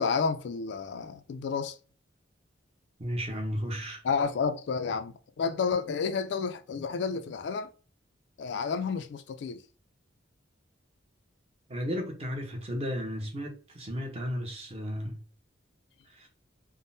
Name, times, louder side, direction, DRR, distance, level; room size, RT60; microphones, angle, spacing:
voice 1, 0.0-1.8 4.0-7.7 8.4-9.6, left 5 dB, 60° left, 0.3 m, -30 dB
voice 2, 3.0-4.0 11.7-15.2 16.1-16.3, equal, 30° right, 0.7 m, -34 dB
3.5 x 2.0 x 2.6 m
head